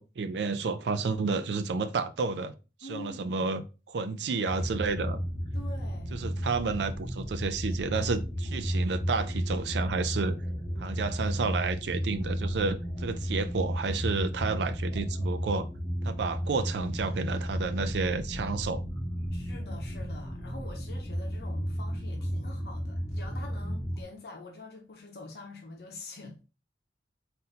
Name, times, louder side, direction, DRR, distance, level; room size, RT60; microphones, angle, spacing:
voice 1, 0.0-2.5 2.8-5.2 6.1-10.4 10.8-15.7 16.0-18.8, right 4 dB, 75° right, 0.4 m, -31 dB
voice 2, 2.8-3.5 5.5-6.3 19.3-26.4, left 3 dB, 60° left, 0.8 m, -45 dB
sound 1, 4.5-24.0, equal, 25° left, 0.9 m, -33 dB
3.9 x 2.6 x 4.1 m
head